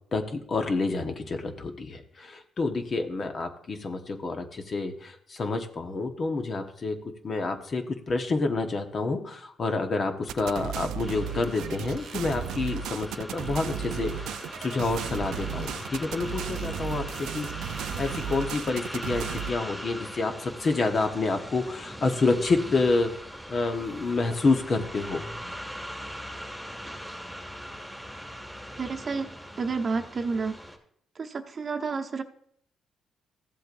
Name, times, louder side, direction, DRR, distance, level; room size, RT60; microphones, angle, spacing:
voice 1, 0.1-17.5 18.0-23.2 23.5-25.2, left 3 dB, 45° left, 5 dB, 1.1 m, -28 dB
sound 1, 10.3-19.5, right 9 dB, 85° right, 0.4 m, -35 dB
sound 2, 11.0-30.8, equal, 5° left, 1.9 m, -40 dB
voice 2, 28.8-29.3 29.6-30.6 31.2-32.2, right 4 dB, 40° right, 4 dB, 0.9 m, -30 dB
15.0 x 7.7 x 2.6 m, 0.64 s
cardioid pair, 90°, 0 cm